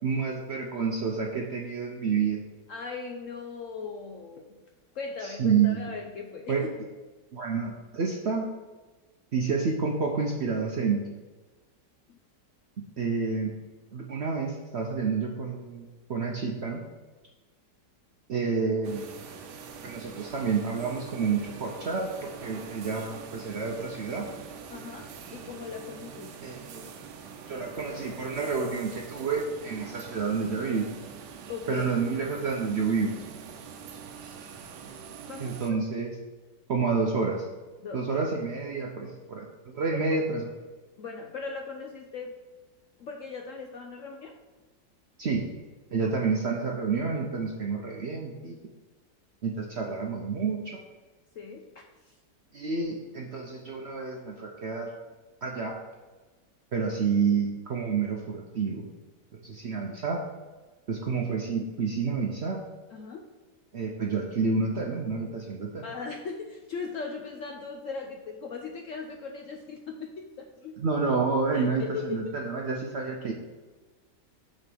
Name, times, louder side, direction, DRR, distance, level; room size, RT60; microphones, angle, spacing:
voice 1, 0.0-2.4 5.2-5.8 6.5-6.7 7.3-8.5 9.3-11.0 13.0-13.5 13.9-16.8 18.3-19.0 19.8-24.2 26.4-26.9 27.5-30.9 31.7-33.2 34.2-34.3 35.4-36.1 36.7-37.5 37.9-40.5 45.2-45.4 45.9-48.6 49.4-50.8 52.5-54.9 55.4-55.7 56.7-58.8 59.4-60.2 60.9-62.6 63.7-65.8 70.8-73.3, right 5 dB, 60° right, 0 dB, 0.7 m, -29 dB
voice 2, 2.7-4.6 4.9-6.6 12.1-12.2 24.7-26.6 31.5-31.9 35.3-35.6 37.8-38.0 40.1-40.2 41.0-42.3 43.0-44.4 51.4-52.2 62.9-63.3 65.8-70.8 71.5-72.4, left 4 dB, 70° left, 3 dB, 0.8 m, -39 dB
sound 1, 18.8-35.7, right 6 dB, 75° right, 1.3 m, -44 dB
6.4 x 4.1 x 6.0 m, 1.3 s
omnidirectional pair, 1.8 m